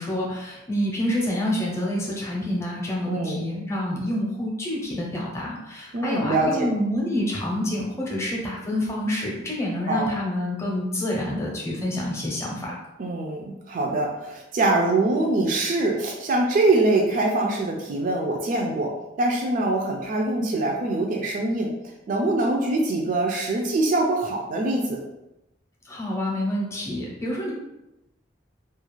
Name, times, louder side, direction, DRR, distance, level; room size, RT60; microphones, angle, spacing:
voice 1, 0.0-12.8 25.8-27.5, left 1 dB, 15° left, -3 dB, 0.6 m, -27 dB
voice 2, 3.1-3.4 5.9-6.7 9.9-10.1 13.0-18.9 19.2-21.7 22.1-25.0, right 2 dB, 45° right, 0 dB, 0.3 m, -23 dB
2.4 x 2.3 x 3.0 m, 0.93 s
head